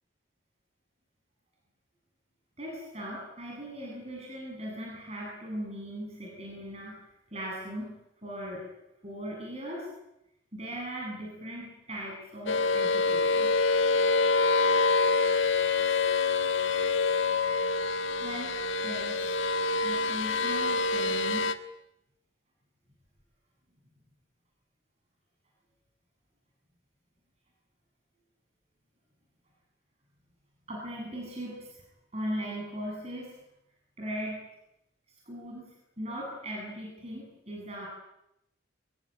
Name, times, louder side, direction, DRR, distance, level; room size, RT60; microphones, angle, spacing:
voice 1, 2.6-7.0 7.3-8.0 8.2-8.7 9.0-9.9 10.5-13.5 18.2-18.5 18.8-19.4 19.8-21.5 30.7-31.8 32.1-33.4 34.0-34.4 35.3-35.7 36.0-37.9, equal, 35° right, -2 dB, 7.9 m, -38 dB
sound 1, 12.5-21.5, left 4 dB, 75° left, 1.5 m, -26 dB
24.5 x 22.5 x 9.0 m, 0.86 s
head